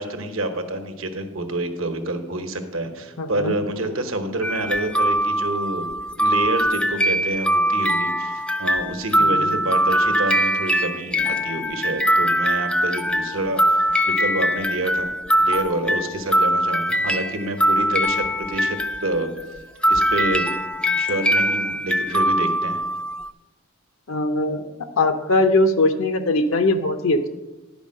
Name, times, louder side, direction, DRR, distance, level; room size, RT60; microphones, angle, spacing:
voice 1, 0.0-5.9 6.2-15.1 15.4-19.3 19.9-20.5 21.0-22.8, right 1 dB, 70° right, 7 dB, 1.0 m, -28 dB
voice 2, 3.2-3.5 9.2-9.5 24.1-24.7 25.0-27.3, left 2 dB, 75° left, 7 dB, 0.7 m, -20 dB
sound 1, 4.4-19.4 19.8-23.3, equal, 5° left, 0.4 m, -22 dB
10.5 x 5.1 x 6.3 m, 1.1 s
head